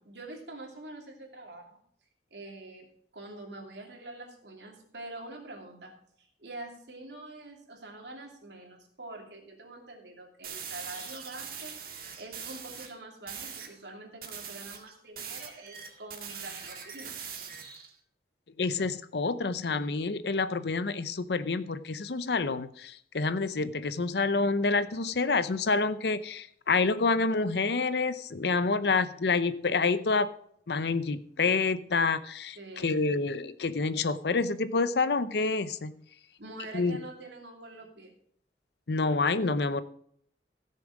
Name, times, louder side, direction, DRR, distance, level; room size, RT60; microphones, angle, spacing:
voice 1, 0.0-1.8 2.3-17.4 32.5-33.1 36.4-38.1, right 2 dB, 75° right, 1 dB, 2.8 m, -45 dB
sound 1, 10.4-12.9 13.3-13.7 14.2-17.9, right 7 dB, 55° right, 2.0 m, -42 dB
voice 2, 18.6-30.3 30.7-32.6 32.8-35.9 36.7-37.0 38.9-39.8, left 4 dB, 65° left, 14 dB, 0.7 m, -28 dB
15.5 x 6.8 x 4.9 m, 0.65 s
head